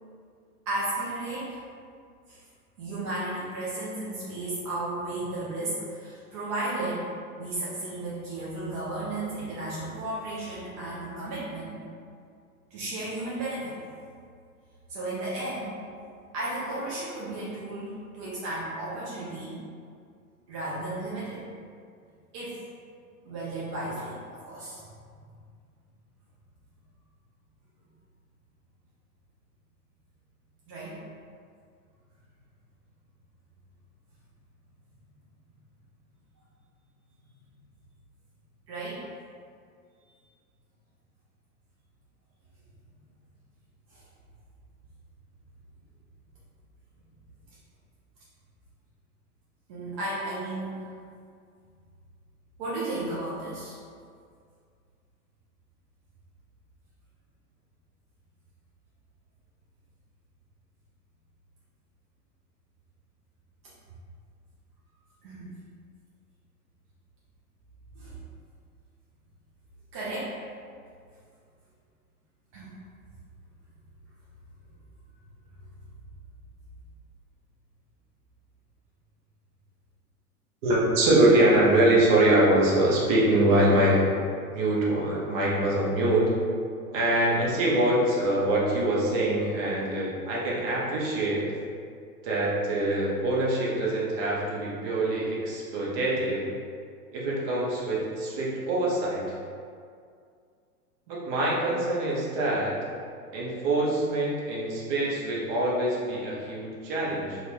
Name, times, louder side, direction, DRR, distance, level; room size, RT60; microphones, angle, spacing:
voice 1, 0.7-1.6 2.3-2.4 2.8-7.1 7.4-11.7 12.7-13.8 14.9-15.7 16.3-19.5 20.5-21.5 22.3-22.6 23.2-24.8 30.7-31.0 38.7-39.0 43.9-44.0 49.7-50.8 52.6-53.8 65.2-65.5 67.9-68.1 69.9-70.3 72.5-72.7, right 2 dB, 25° right, -8 dB, 0.4 m, -34 dB
voice 2, 80.6-84.1 84.5-86.4 86.9-91.4 92.2-96.4 97.1-99.2 101.1-102.7 103.3-107.4, right 1 dB, 40° right, -5 dB, 0.8 m, -24 dB
2.4 x 2.3 x 3.3 m, 2.2 s
figure-of-eight pair, 100°, 46 cm